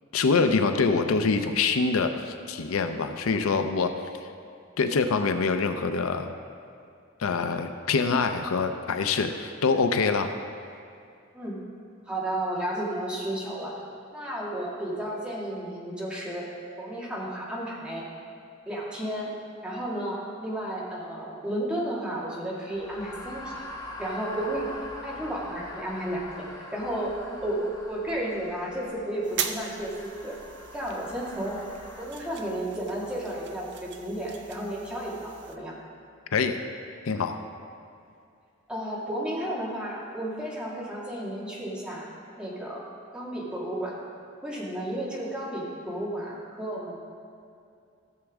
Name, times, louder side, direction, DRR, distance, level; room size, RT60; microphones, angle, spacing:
voice 1, 0.1-3.9 4.8-6.3 7.2-10.3 36.3-36.6 37.1-37.4, left 4 dB, 90° left, 8 dB, 0.5 m, -25 dB
voice 2, 12.1-13.7 14.1-16.5 16.8-18.0 18.7-19.3 19.6-23.7 24.0-24.7 25.0-26.5 26.7-30.4 30.7-31.6 32.0-35.7 38.7-42.1 42.4-42.8 43.1-44.0 44.4-46.9, right 1 dB, 5° right, -6 dB, 1.9 m, -32 dB
sound 1, 22.7-32.1, left 1 dB, 20° left, 0.9 m, -43 dB
sound 2, 29.2-35.6, right 8 dB, 55° right, 0.6 m, -39 dB
14.5 x 7.1 x 3.6 m, 2.4 s
head